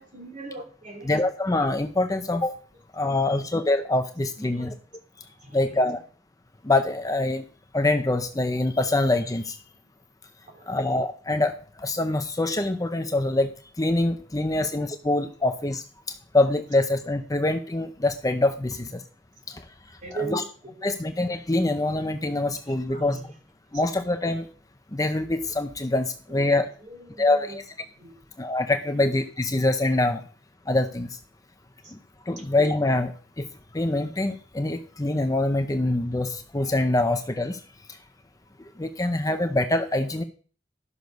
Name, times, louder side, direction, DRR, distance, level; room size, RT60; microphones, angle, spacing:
voice 1, 0.0-1.1 4.4-4.7 5.4-6.0 10.5-10.8 14.5-14.7 20.0-20.8 22.9-23.3 23.7-23.8 26.3-26.5 26.8-27.6 27.9-28.2 28.8-28.9 31.8-31.9 32.3-32.4, right 3 dB, 45° right, 3 dB, 3.0 m, -39 dB
voice 2, 1.0-2.5 2.9-4.7 5.5-6.0 6.6-7.4 7.7-9.6 10.7-13.5 13.8-15.8 16.3-19.0 19.5-19.6 20.1-20.4 20.8-23.2 23.7-24.5 24.9-26.7 27.2-27.6 28.4-30.2 30.7-31.1 32.3-33.5 33.7-37.6 38.8-40.2, left 2 dB, 20° left, 7 dB, 0.7 m, -24 dB
12.5 x 6.5 x 5.3 m, 0.41 s
head